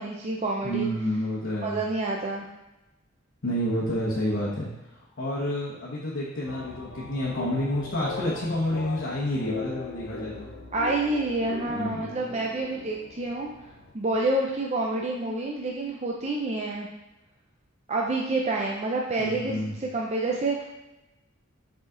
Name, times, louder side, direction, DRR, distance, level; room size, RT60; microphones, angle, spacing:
voice 1, 0.0-0.9 1.6-2.4 10.7-13.5 13.9-16.9 17.9-20.6, right 2 dB, 35° right, -1 dB, 0.5 m, -28 dB
voice 2, 0.6-1.8 3.4-4.7 5.2-10.5 11.7-12.2 19.2-19.7, equal, 60° left, -7 dB, 1.1 m, -29 dB
sound 1, 6.5-13.9, left 4 dB, 80° left, 0.7 m, -39 dB
5.2 x 4.9 x 3.8 m, 0.99 s
head